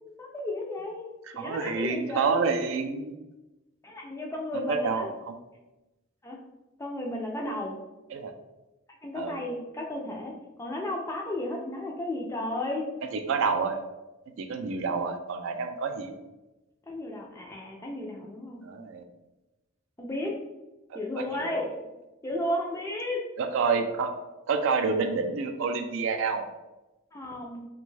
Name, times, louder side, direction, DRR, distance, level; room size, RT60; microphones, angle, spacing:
voice 1, 0.0-2.4 3.8-5.1 6.2-6.4 6.8-7.7 9.0-12.9 16.9-18.6 20.0-20.4 20.9-21.9 22.2-23.2 27.1-27.7, left 1 dB, 15° left, 0 dB, 0.3 m, -33 dB
voice 2, 1.4-3.1 4.5-5.4 8.1-8.3 9.1-9.4 13.1-13.8 14.4-16.1 18.6-19.0 20.9-21.7 23.4-24.1 24.5-26.4, right 5 dB, 70° right, 6 dB, 0.3 m, -28 dB
2.6 x 2.2 x 3.1 m, 1.0 s
head